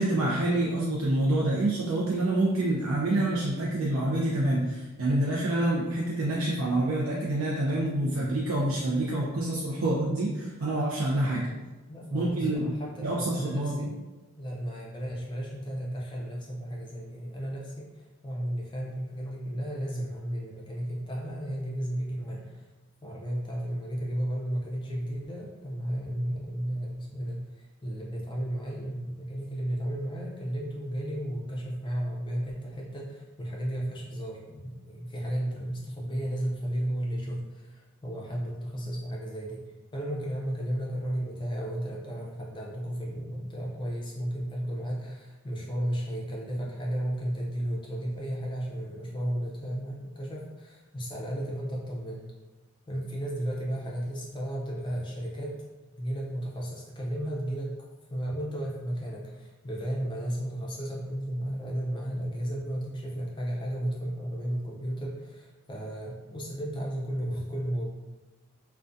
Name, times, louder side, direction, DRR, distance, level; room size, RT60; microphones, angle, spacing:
voice 1, 0.0-11.5 12.1-12.7 13.0-13.7, right 1 dB, 70° right, -5 dB, 0.4 m, -27 dB
voice 2, 11.9-13.9 14.4-22.7 23.0-39.7 39.9-52.3 52.9-55.5 56.0-57.8 58.1-67.9, equal, 20° left, -3 dB, 0.4 m, -34 dB
2.3 x 2.2 x 2.5 m, 1.1 s
head